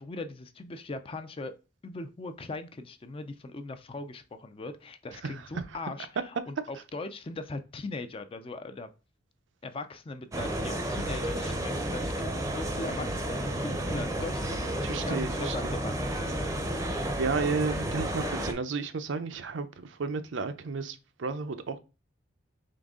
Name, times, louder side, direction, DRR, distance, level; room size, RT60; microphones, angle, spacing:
voice 1, 0.0-1.5 1.8-8.9 9.6-16.3, left 2 dB, 30° left, 0.4 m, -40 dB
sound 1, 10.3-18.5, right 1 dB, 15° right, 0.6 m, -31 dB
voice 2, 14.8-15.8 17.2-21.8, right 4 dB, 70° right, 0.5 m, -33 dB
3.9 x 3.4 x 3.6 m
head